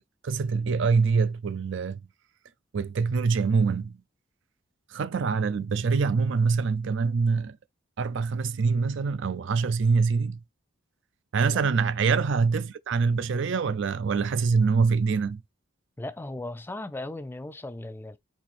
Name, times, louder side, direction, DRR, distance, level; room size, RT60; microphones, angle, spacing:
voice 1, 0.2-2.0 2.7-4.0 4.9-7.6 8.0-10.4 11.3-15.4, right 5 dB, 65° right, 0.4 m, -24 dB
voice 2, 16.0-18.2, left 2 dB, 10° left, 0.3 m, -37 dB
4.4 x 2.7 x 4.2 m
head